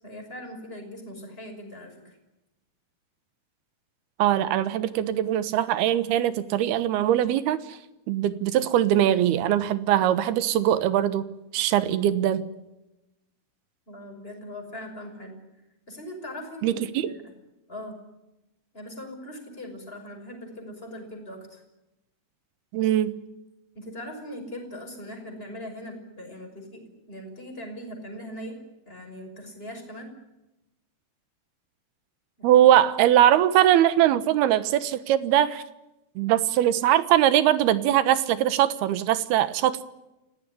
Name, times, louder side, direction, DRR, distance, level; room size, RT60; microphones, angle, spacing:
voice 1, 0.0-2.2 13.9-15.4 15.9-17.1 17.7-18.0 18.7-21.6 23.7-28.6 28.9-30.1 32.4-32.6, equal, 15° left, 3 dB, 5.8 m, -40 dB
voice 2, 4.2-7.8 8.1-11.2 11.5-12.4 16.6-17.1 22.7-23.2 32.4-35.6 36.2-39.8, right 12 dB, 80° right, 14 dB, 3.1 m, -21 dB
28.0 x 18.0 x 10.0 m, 0.97 s
omnidirectional pair, 4.5 m